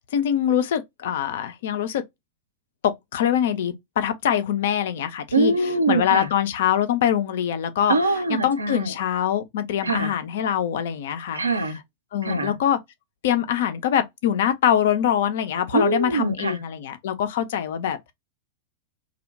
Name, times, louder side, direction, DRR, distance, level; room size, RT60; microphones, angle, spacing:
voice 1, 0.1-2.0 2.8-5.5 5.9-8.0 8.3-11.4 12.1-12.8 13.2-18.1, left 9 dB, 55° left, 0.4 m, -23 dB
voice 2, 5.3-6.3 7.9-8.9 9.8-10.1 11.3-11.8 12.2-12.6 15.7-16.6, right 3 dB, 80° right, 0.5 m, -23 dB
2.7 x 2.1 x 2.6 m
figure-of-eight pair, 90°, 0 cm